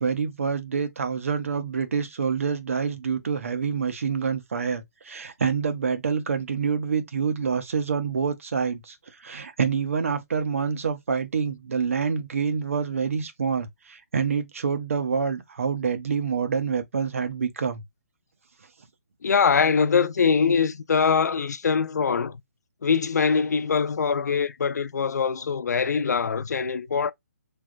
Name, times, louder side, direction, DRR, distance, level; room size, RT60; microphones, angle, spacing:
voice 1, 0.0-17.8, right 6 dB, 55° right, 0.7 m, -27 dB
voice 2, 19.2-22.4 22.8-27.1, left 6 dB, 90° left, 0.4 m, -23 dB
3.2 x 2.2 x 2.4 m
hypercardioid pair, 180°, 9 cm